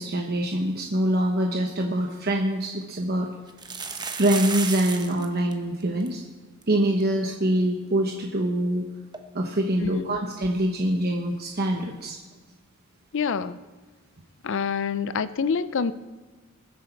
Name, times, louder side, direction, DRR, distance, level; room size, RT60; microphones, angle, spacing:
voice 1, 0.0-3.3 4.2-6.2 6.7-8.8 9.3-12.2, right 1 dB, 50° right, 2 dB, 1.0 m, -24 dB
sound 1, 1.9-2.0 2.3-2.4 3.5-5.3 5.5-5.6 5.8-6.1 6.6-6.7 7.0-7.1 9.1-9.2, right 5 dB, 20° right, 1.0 m, -33 dB
voice 2, 9.8-10.2 13.1-13.6 14.4-15.9, left 6 dB, 60° left, 15 dB, 0.5 m, -27 dB
21.0 x 8.0 x 4.5 m, 1.3 s
head